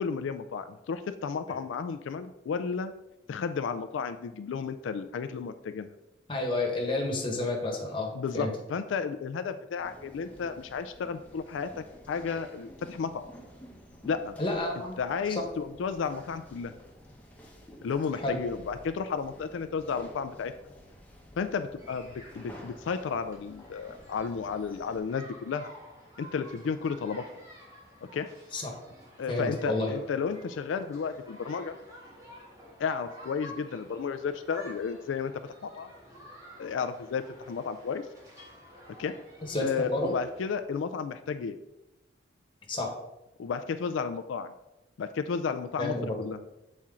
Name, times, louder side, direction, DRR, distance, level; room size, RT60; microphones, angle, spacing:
voice 1, 0.0-2.9 3.3-5.9 8.1-13.3 14.0-14.3 15.0-16.7 17.8-20.5 21.4-25.7 26.2-27.2 28.1-28.3 29.2-31.8 32.8-35.3 35.6-35.9 36.6-38.1 39.0-39.2 39.6-41.6 43.4-44.5 45.0-46.4, left 5 dB, 85° left, 10 dB, 0.3 m, -33 dB
voice 2, 6.3-8.5 14.4-15.0 15.3-15.4 18.1-18.4 28.5-28.7 29.3-30.0 39.4-40.1 42.7-42.9 45.8-46.3, left 2 dB, 25° left, 0 dB, 1.2 m, -30 dB
sound 1, 9.8-25.0, equal, 10° left, 0.9 m, -51 dB
sound 2, 21.8-40.6, equal, 15° right, 1.5 m, -51 dB
7.3 x 4.3 x 3.7 m, 0.94 s
head